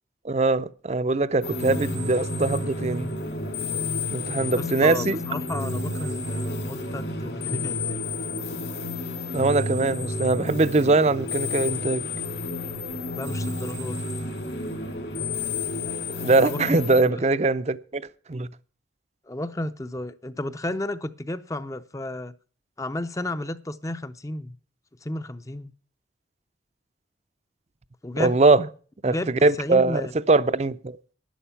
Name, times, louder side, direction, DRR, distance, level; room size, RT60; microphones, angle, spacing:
voice 1, 0.2-3.1 4.1-5.2 9.3-12.1 16.2-18.5 28.2-28.6 29.0-31.0, right 3 dB, 35° right, 0.5 m, -22 dB
sound 1, 1.4-17.0, left 2 dB, 65° left, 2.7 m, -31 dB
voice 2, 4.6-8.0 13.2-14.0 16.4-17.2 19.3-22.3 22.8-24.5 25.0-25.7 28.0-28.3 29.1-30.1, left 1 dB, 15° left, 0.5 m, -33 dB
11.5 x 11.0 x 5.7 m
head